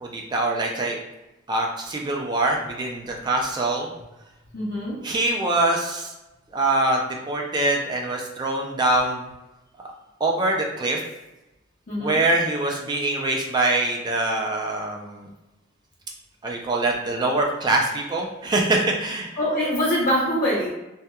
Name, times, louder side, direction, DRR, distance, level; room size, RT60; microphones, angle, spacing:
voice 1, 0.0-1.0 1.5-3.9 5.0-6.1 6.5-7.0 7.3-9.2 10.2-11.0 12.0-15.3 16.4-19.4, right 2 dB, 20° right, 0 dB, 0.3 m, -24 dB
voice 2, 4.5-5.0 11.9-12.2 19.4-20.7, equal, 45° left, -7 dB, 0.6 m, -24 dB
2.7 x 2.2 x 2.2 m, 0.98 s
head